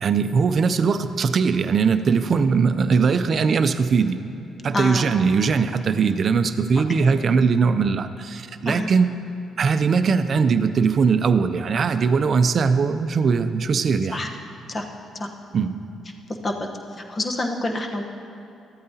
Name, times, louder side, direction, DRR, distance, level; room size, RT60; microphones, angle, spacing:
voice 1, 0.0-4.2 4.6-9.1 9.6-14.3 15.5-15.8, right 5 dB, 55° right, 11 dB, 0.4 m, -20 dB
voice 2, 4.7-5.1 8.6-8.9 14.1-14.3 14.7-14.8 15.2-15.3 16.4-16.5 17.1-18.0, left 2 dB, 35° left, 3 dB, 1.0 m, -26 dB
13.5 x 8.6 x 2.8 m, 2.8 s
supercardioid pair, 70°, 0 cm